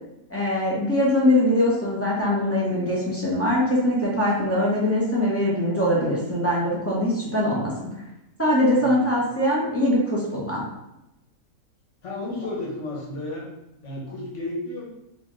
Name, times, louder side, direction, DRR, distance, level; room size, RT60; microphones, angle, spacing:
voice 1, 0.3-7.9 8.4-10.6, left 1 dB, 15° left, -6 dB, 0.5 m, -22 dB
voice 2, 8.8-9.1 12.0-13.4 13.8-14.8, left 2 dB, 55° left, -4 dB, 1.3 m, -32 dB
4.0 x 2.8 x 3.1 m, 0.89 s
omnidirectional pair, 1.5 m